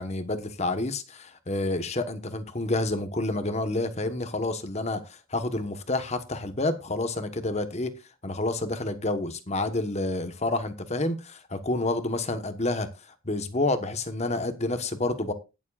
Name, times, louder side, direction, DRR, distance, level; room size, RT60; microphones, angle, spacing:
voice 1, 0.0-7.9 8.2-12.9 13.2-15.3, left 2 dB, 35° left, 1.2 m, -29 dB
19.5 x 7.2 x 2.4 m
head